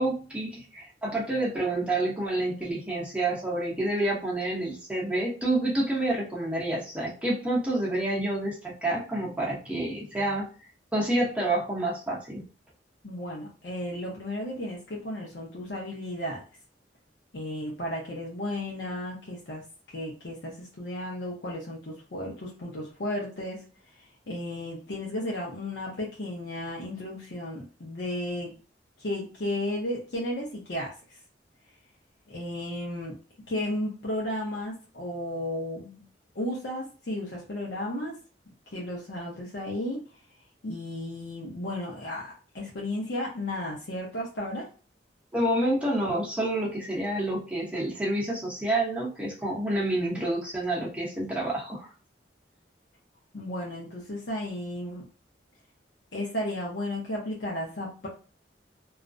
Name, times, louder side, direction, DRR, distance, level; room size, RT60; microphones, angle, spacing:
voice 1, 0.0-10.5 10.9-12.4 45.3-51.9, right 1 dB, 5° right, -5 dB, 0.8 m, -28 dB
voice 2, 13.0-16.4 17.3-19.6 19.9-23.6 23.9-28.5 29.0-30.9 32.3-33.1 33.5-36.0 36.3-38.2 38.7-40.0 40.6-44.7 53.3-55.0 56.1-58.1, left 1 dB, 75° left, -3 dB, 0.7 m, -34 dB
2.4 x 2.1 x 2.5 m, 0.36 s
head